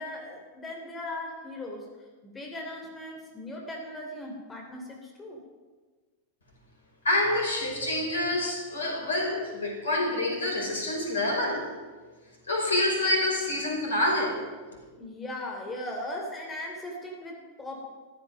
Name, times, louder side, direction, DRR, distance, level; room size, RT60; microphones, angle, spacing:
voice 1, 0.0-1.9 2.2-5.4 15.0-17.8, left 1 dB, 15° left, 0 dB, 3.0 m, -38 dB
voice 2, 7.0-11.6 12.5-14.4, left 1 dB, 70° left, 0 dB, 5.0 m, -27 dB
14.5 x 13.0 x 6.5 m, 1.4 s
figure-of-eight pair, 90°, 0 cm